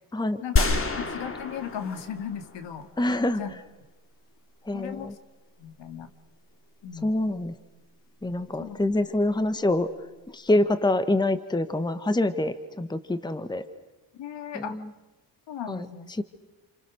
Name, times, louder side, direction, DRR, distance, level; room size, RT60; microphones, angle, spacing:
sound 1, 0.6-2.9, left 3 dB, 25° left, 2.4 m, -28 dB
voice 1, 1.0-2.9 3.4-3.6 4.7-5.1 5.6-6.1 6.8-7.1 8.6-8.8 14.1-14.8 15.5-16.1, left 8 dB, 60° left, 9 dB, 2.3 m, -36 dB
voice 2, 3.0-3.6 4.6-5.1 7.0-7.5 8.2-9.9 10.3-13.6 14.5-14.9 15.7-16.2, left 1 dB, 10° left, 11 dB, 1.4 m, -26 dB
29.0 x 28.0 x 6.5 m, 1.2 s
cardioid pair, 100°, 48 cm